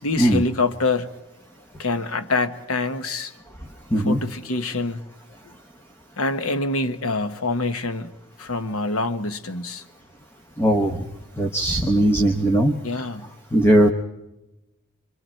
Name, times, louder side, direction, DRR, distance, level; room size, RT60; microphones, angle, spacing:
voice 1, 0.0-1.1 1.8-3.3 3.9-5.0 6.2-8.1 8.4-9.8 12.8-13.3, left 3 dB, 75° left, 10 dB, 1.1 m, -25 dB
voice 2, 10.6-11.0 11.4-12.7 13.5-13.9, right 1 dB, 10° left, 4 dB, 1.0 m, -18 dB
25.5 x 25.0 x 4.5 m, 0.97 s
head